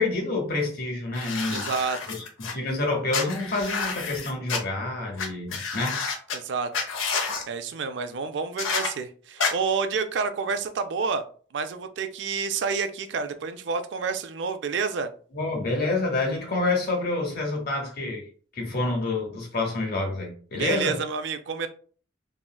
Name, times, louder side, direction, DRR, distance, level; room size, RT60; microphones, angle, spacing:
voice 1, 0.0-1.7 2.1-6.0 15.3-18.3 18.5-21.0, left 2 dB, 50° left, 0.9 m, -28 dB
sound 1, 1.1-2.5 3.1-4.6 5.2-5.3 5.5-6.4 6.7-7.4 8.6-8.9 9.4-9.5, left 5 dB, 80° left, 0.6 m, -29 dB
voice 2, 1.5-2.0 6.3-6.7 7.5-11.2 11.5-15.1 20.5-21.7, right 5 dB, 60° right, 0.3 m, -29 dB
3.6 x 2.1 x 2.2 m
head